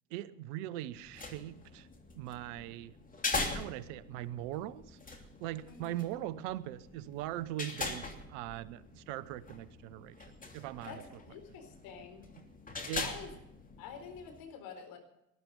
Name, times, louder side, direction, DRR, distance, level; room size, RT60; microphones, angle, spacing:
voice 1, 0.1-1.9 2.1-2.9 3.5-10.2 10.5-11.0 12.4-12.5 12.9-13.1, right 14 dB, 65° right, 17 dB, 1.0 m, -41 dB
sound 1, 0.9-14.4, left 3 dB, 20° left, 2.9 m, -42 dB
voice 2, 11.3-12.3 13.0-13.3 13.8-15.0, left 6 dB, 60° left, 4 dB, 4.3 m, -47 dB
19.5 x 12.0 x 5.3 m, 0.82 s
hypercardioid pair, 65°, 39 cm